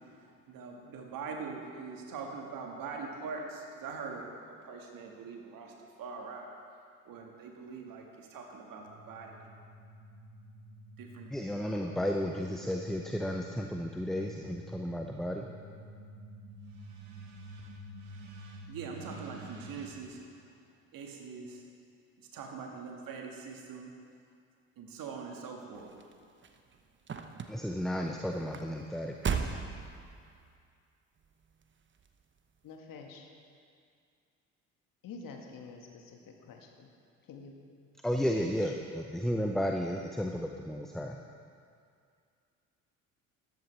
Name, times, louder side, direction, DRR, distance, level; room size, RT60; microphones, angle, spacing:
voice 1, 0.5-6.5 7.1-9.4 11.0-11.9 18.7-20.2 20.9-21.6 22.3-23.9 24.8-25.9, right 5 dB, 55° right, 1 dB, 1.7 m, -43 dB
sound 1, 8.8-19.9, right 1 dB, 85° right, 1.3 m, -49 dB
voice 2, 11.3-15.5 27.5-29.5 38.0-41.2, equal, ahead, 3 dB, 0.6 m, -33 dB
sound 2, 25.8-30.6 31.2-31.6 32.0-32.1, right 6 dB, 30° right, 0.9 m, -37 dB
voice 3, 32.6-33.3 35.0-36.9 37.3-37.5 38.4-38.7, left 4 dB, 55° left, 2 dB, 1.6 m, -48 dB
13.5 x 10.5 x 3.3 m, 2.3 s
hypercardioid pair, 50°, 40 cm